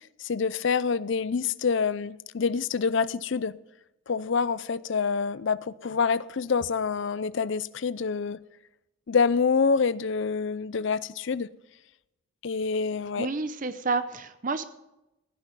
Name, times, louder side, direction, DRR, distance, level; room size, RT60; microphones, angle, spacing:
voice 1, 0.2-3.5 4.1-8.4 9.1-11.5 12.4-13.3, left 5 dB, 60° left, 0.5 m, -26 dB
voice 2, 13.2-14.6, right 3 dB, 40° right, 0.7 m, -29 dB
16.0 x 9.9 x 5.3 m
head